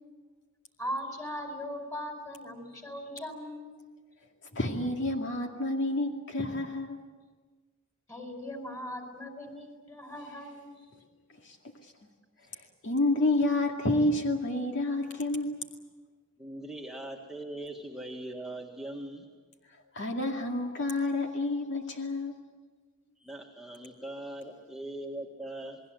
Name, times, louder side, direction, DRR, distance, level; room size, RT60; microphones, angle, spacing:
voice 1, 0.8-3.8 8.1-10.9, equal, 15° left, 4 dB, 4.9 m, -39 dB
voice 2, 4.5-7.0 11.4-11.6 12.5-15.6 19.9-22.4, left 2 dB, 60° left, 2 dB, 2.3 m, -29 dB
voice 3, 16.4-19.3 23.2-25.8, right 1 dB, ahead, -1 dB, 1.9 m, -41 dB
29.0 x 20.0 x 7.8 m, 1.4 s
head